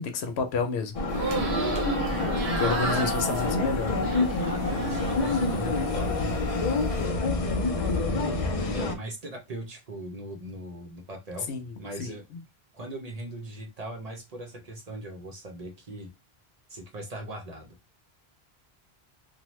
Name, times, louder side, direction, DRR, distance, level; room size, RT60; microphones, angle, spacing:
voice 1, 0.0-1.7 2.6-3.9 11.5-12.4, left 4 dB, 90° left, 0.9 m, -31 dB
sound 1, 0.9-8.9, left 3 dB, 50° left, 0.4 m, -27 dB
sound 2, 1.1-5.5 5.8-6.6, right 3 dB, 85° right, 1.0 m, -32 dB
voice 2, 4.4-6.3 7.8-11.5 11.8-12.2 12.7-16.1 16.7-17.7, right 1 dB, 45° right, 0.6 m, -39 dB
2.8 x 2.1 x 3.0 m
omnidirectional pair, 1.1 m